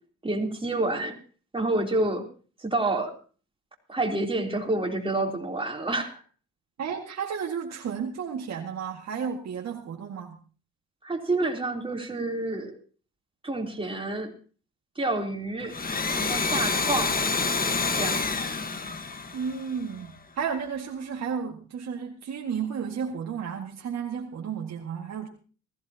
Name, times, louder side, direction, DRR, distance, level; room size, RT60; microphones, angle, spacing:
voice 1, 0.2-1.1 1.5-2.2 2.6-3.1 3.9-6.2 11.0-12.8 13.4-14.3 14.9-15.8 16.1-17.2 17.9-18.3, right 2 dB, 20° right, 2 dB, 3.3 m, -28 dB
voice 2, 6.8-10.4 19.3-25.3, right 7 dB, 60° right, 1 dB, 1.9 m, -33 dB
Domestic sounds home sounds, 15.6-20.1, left 4 dB, 30° left, 1.4 m, -28 dB
20.0 x 15.0 x 2.9 m, 0.39 s
cardioid pair, 90°, 30 cm